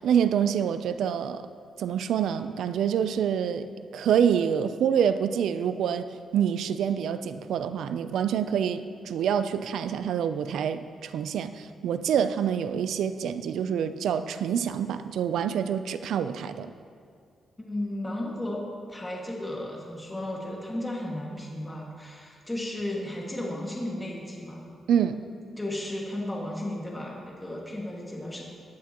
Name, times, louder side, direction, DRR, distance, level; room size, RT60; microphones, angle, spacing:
voice 1, 0.0-1.4 1.8-6.1 6.3-16.7 24.9-25.2, right 8 dB, 85° right, 12 dB, 0.5 m, -26 dB
voice 2, 17.6-18.6 18.9-24.7 25.6-28.4, left 1 dB, 10° left, -3 dB, 2.0 m, -34 dB
17.0 x 11.0 x 3.0 m, 2.2 s
cardioid pair, 110°, 0 cm